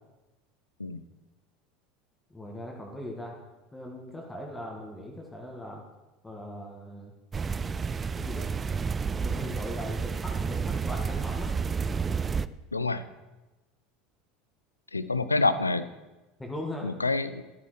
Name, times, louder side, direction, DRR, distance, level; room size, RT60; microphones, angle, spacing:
voice 1, 2.3-3.4 3.7-5.8 6.2-7.1 7.7-7.9 8.1-8.5 9.2-11.6 15.2-15.3 16.4-16.9, left 1 dB, 10° left, 0 dB, 1.7 m, -39 dB
sound 1, 7.3-12.5, right 5 dB, 25° right, 0.3 m, -30 dB
voice 2, 12.7-13.0 14.9-15.9 16.8-17.4, left 3 dB, 85° left, 13 dB, 0.5 m, -27 dB
13.5 x 12.5 x 3.2 m, 1.1 s
figure-of-eight pair, 70°, 0 cm